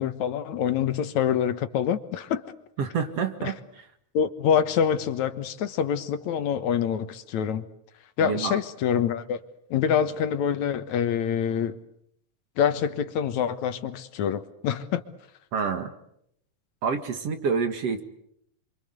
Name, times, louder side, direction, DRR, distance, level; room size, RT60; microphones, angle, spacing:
voice 1, 0.0-2.4 3.4-3.5 4.1-7.7 8.2-9.4 9.7-11.8 12.6-15.0, left 8 dB, 70° left, 2.5 m, -26 dB
voice 2, 2.8-3.9 8.2-8.6 15.5-15.9 16.8-18.0, right 5 dB, 55° right, 2.7 m, -28 dB
28.5 x 25.5 x 8.1 m
omnidirectional pair, 3.5 m